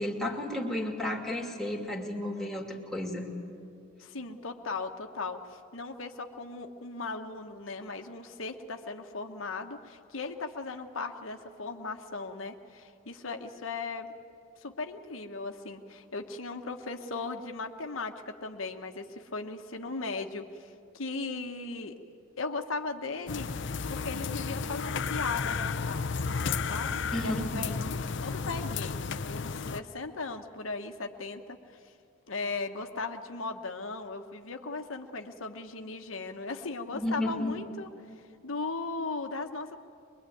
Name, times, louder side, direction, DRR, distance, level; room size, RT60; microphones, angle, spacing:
voice 1, 0.0-3.3 27.1-27.6 36.9-37.6, left 1 dB, ahead, -1 dB, 2.4 m, -32 dB
voice 2, 4.0-14.1 14.6-22.0 22.4-23.5 23.9-26.0 26.3-31.8 32.3-37.9 38.2-39.8, left 3 dB, 85° left, 5 dB, 1.2 m, -37 dB
sound 1, 23.3-29.8, left 5 dB, 60° left, 0.6 m, -33 dB
23.5 x 22.0 x 9.3 m, 2.6 s
head